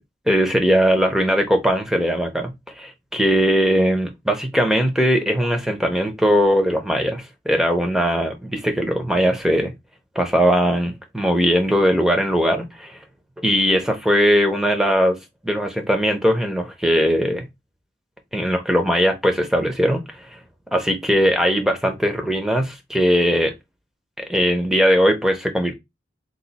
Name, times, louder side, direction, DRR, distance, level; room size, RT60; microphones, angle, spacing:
voice 1, 0.3-9.7 10.1-13.0 13.4-15.2 15.4-17.5 18.3-20.4 20.7-23.5 24.2-25.7, equal, ahead, 0.7 m, -19 dB
3.9 x 2.6 x 4.1 m
head